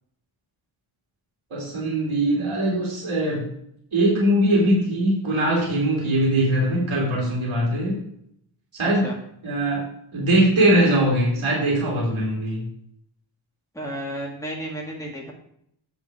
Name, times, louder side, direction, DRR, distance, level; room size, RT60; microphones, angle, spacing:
voice 1, 1.5-3.4 3.9-8.0 8.7-9.1 9.4-9.8 10.1-12.6, right 1 dB, 80° right, -4 dB, 2.9 m, -21 dB
voice 2, 8.8-9.2 13.8-15.3, equal, 5° left, -2 dB, 2.0 m, -32 dB
7.3 x 6.5 x 4.8 m, 0.72 s
cardioid pair, 45°, 48 cm